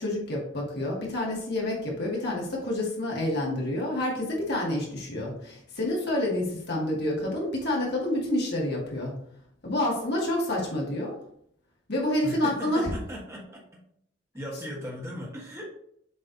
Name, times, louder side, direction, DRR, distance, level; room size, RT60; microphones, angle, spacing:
voice 1, 0.0-9.2 9.6-11.2 11.9-12.9, left 1 dB, 55° left, -3 dB, 1.9 m, -28 dB
voice 2, 12.2-13.8 14.3-15.7, equal, 15° right, -3 dB, 1.5 m, -38 dB
7.4 x 3.3 x 4.0 m, 0.69 s
head